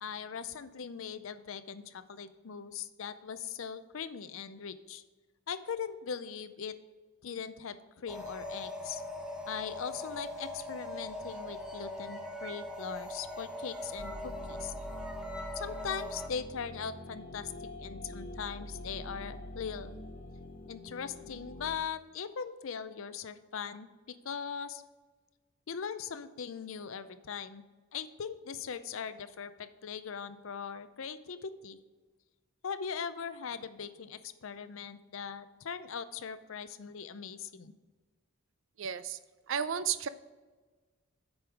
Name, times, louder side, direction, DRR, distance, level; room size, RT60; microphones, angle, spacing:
voice 1, 0.0-5.0 5.5-6.7 7.2-9.0 9.5-14.7 15.6-19.9 20.7-24.8 25.7-27.6 27.9-31.8 32.6-37.7, left 6 dB, 60° left, 13 dB, 0.5 m, -40 dB
sound 1, 8.1-16.3, left 1 dB, 5° right, 0.7 m, -41 dB
sound 2, 14.0-21.8, left 1 dB, 40° left, 0.9 m, -45 dB
voice 2, 38.8-39.2 39.5-40.1, right 8 dB, 60° right, 14 dB, 0.4 m, -32 dB
8.0 x 5.4 x 4.7 m, 1.3 s
head